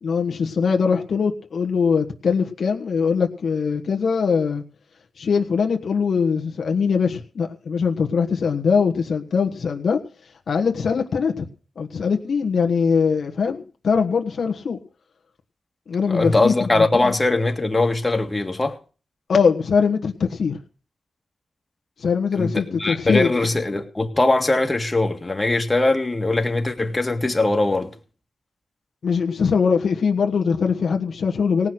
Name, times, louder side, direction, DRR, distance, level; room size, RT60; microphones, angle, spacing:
voice 1, 0.0-4.6 5.2-10.0 10.5-11.5 11.8-14.8 15.9-17.2 19.3-20.6 22.0-23.3 29.0-31.7, left 5 dB, 70° left, 1.4 m, -21 dB
voice 2, 16.1-18.8 22.4-27.9, left 2 dB, 25° left, 2.0 m, -21 dB
18.0 x 6.1 x 7.9 m
cardioid pair, 65°, 0 cm